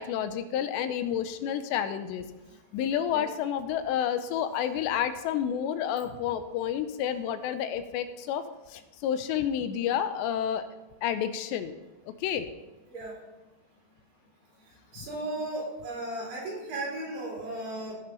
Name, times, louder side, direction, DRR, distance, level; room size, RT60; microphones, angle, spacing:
voice 1, 0.0-2.2 2.7-8.4 8.7-10.7 11.0-11.7 12.2-12.5, left 9 dB, 90° left, 10 dB, 2.9 m, -30 dB
voice 2, 14.9-18.0, right 2 dB, 70° right, -3 dB, 6.3 m, -35 dB
16.5 x 6.8 x 5.5 m, 1.1 s
omnidirectional pair, 5.0 m